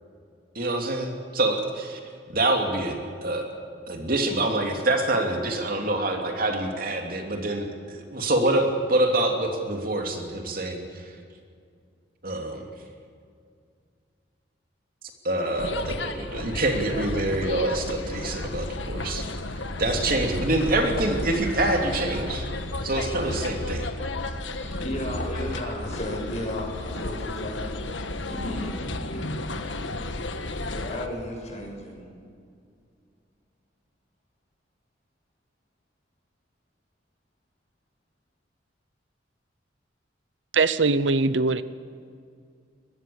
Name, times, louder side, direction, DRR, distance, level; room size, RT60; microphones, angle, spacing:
voice 1, 0.5-2.0 2.3-3.4 3.9-11.1 12.2-12.6 15.2-19.2 19.8-22.5 22.8-23.9, right 2 dB, 50° right, 3 dB, 2.9 m, -26 dB
sound 1, 15.6-31.1, left 2 dB, 90° left, 1.5 m, -33 dB
voice 2, 24.3-27.8 28.3-28.7 29.1-29.3 30.6-32.1, left 1 dB, 40° left, 0 dB, 6.6 m, -34 dB
voice 3, 40.5-41.6, right 3 dB, 80° right, 15 dB, 0.8 m, -21 dB
23.5 x 21.0 x 7.2 m, 2.3 s
head